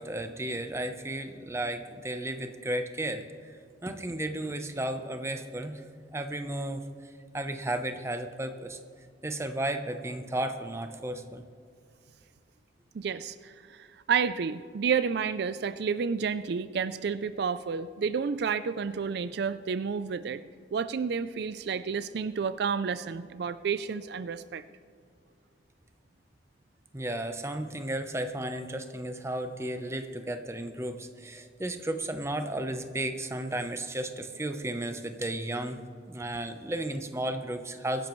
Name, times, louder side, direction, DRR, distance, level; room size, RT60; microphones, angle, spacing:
voice 1, 0.0-3.3 3.8-5.8 6.1-6.8 7.3-8.8 9.2-11.4 26.9-38.1, right 1 dB, 15° right, 7 dB, 0.8 m, -34 dB
voice 2, 12.9-20.4 20.7-24.6, right 6 dB, 65° right, 14 dB, 0.4 m, -30 dB
23.5 x 10.5 x 3.1 m, 2.2 s
head